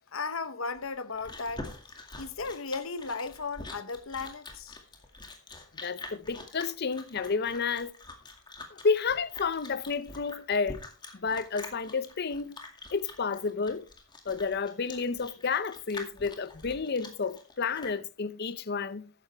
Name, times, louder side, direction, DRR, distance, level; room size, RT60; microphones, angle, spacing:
voice 1, 0.1-1.7 2.1-4.8, left 4 dB, 75° left, 1.1 m, -35 dB
Chewing mastication, 0.8-18.0, left 2 dB, 20° left, 2.1 m, -45 dB
voice 2, 5.8-7.9 8.7-10.8 11.1-12.6 12.9-13.8 14.3-19.1, left 5 dB, 50° left, 0.6 m, -31 dB
13.5 x 9.8 x 3.4 m
head